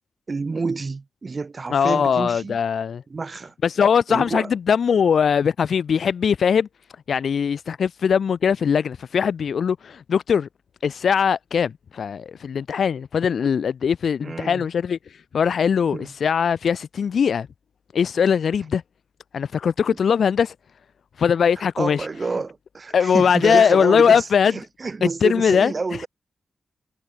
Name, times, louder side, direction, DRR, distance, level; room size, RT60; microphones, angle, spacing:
voice 1, 0.3-2.6 3.1-3.5 4.1-4.5 14.2-14.7 15.9-16.1 19.9-20.0 21.8-26.1, right 4 dB, 40° right, 2.4 m, -29 dB
voice 2, 1.7-3.0 3.6-6.7 7.1-10.5 10.8-15.0 15.3-17.5 17.9-18.8 19.3-20.5 21.2-22.0 22.9-24.5 25.2-25.7, left 7 dB, 70° left, 1.1 m, -20 dB
cardioid pair, 65°, 0 cm